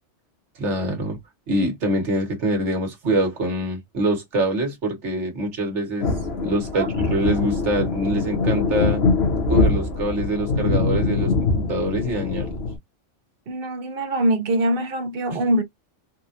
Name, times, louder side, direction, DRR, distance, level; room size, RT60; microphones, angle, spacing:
voice 1, 0.6-1.2 1.5-6.1 6.4-9.0 9.5-12.6 15.3-15.4, right 1 dB, 70° right, 1.6 m, -25 dB
sound 1, 6.0-12.8, left 3 dB, 60° left, 1.3 m, -23 dB
voice 2, 13.5-15.6, right 1 dB, 55° right, 1.0 m, -23 dB
4.1 x 2.3 x 2.8 m
omnidirectional pair, 1.2 m